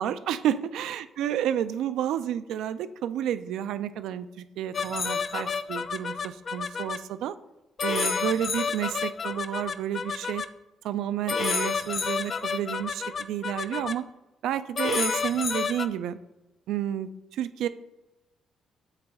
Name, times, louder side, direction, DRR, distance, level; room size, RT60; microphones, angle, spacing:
voice 1, 0.0-7.3 7.8-10.4 10.8-14.0 14.4-16.2 16.7-17.7, right 10 dB, 85° right, 12 dB, 0.3 m, -30 dB
sound 1, 4.7-7.0 7.8-10.5 11.3-13.9 14.8-15.9, left 5 dB, 45° left, 0.3 m, -30 dB
8.0 x 4.1 x 3.5 m, 0.99 s
cardioid pair, 90°, 0 cm